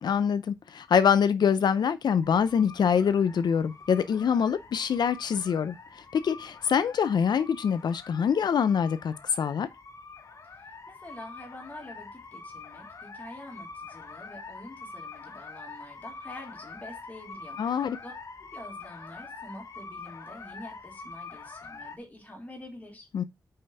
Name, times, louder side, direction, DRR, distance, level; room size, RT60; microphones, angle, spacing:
voice 1, 0.0-9.7 17.6-18.0 23.1-23.2, left 7 dB, 85° left, 0.5 m, -25 dB
sound 1, 2.2-22.0, left 4 dB, 50° left, 1.0 m, -45 dB
voice 2, 10.5-18.1 18.4-23.1, left 1 dB, 20° left, 3.1 m, -46 dB
5.5 x 5.3 x 5.4 m
wide cardioid pair, 165°, 7 cm